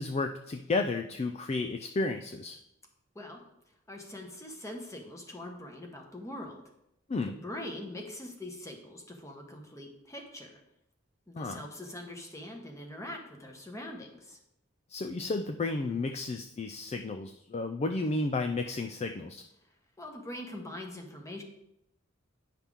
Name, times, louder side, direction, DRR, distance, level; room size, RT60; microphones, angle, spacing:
voice 1, 0.0-2.6 7.1-7.3 11.4-11.6 14.9-19.4, left 3 dB, 35° left, 6 dB, 0.4 m, -32 dB
voice 2, 3.9-6.6 7.2-10.6 11.3-14.4 20.0-21.4, left 1 dB, 15° left, 2 dB, 1.2 m, -43 dB
9.7 x 5.8 x 3.6 m, 0.82 s
head